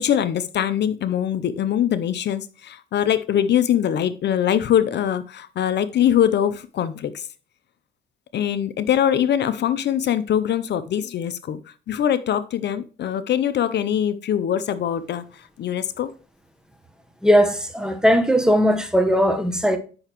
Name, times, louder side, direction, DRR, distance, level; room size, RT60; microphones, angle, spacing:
voice 1, 0.0-7.3 8.3-11.6 11.9-16.1, left 10 dB, 60° left, 0.6 m, -22 dB
voice 2, 17.2-19.8, equal, 5° right, 1.0 m, -18 dB
8.7 x 5.8 x 3.0 m
cardioid pair, 90°, 20 cm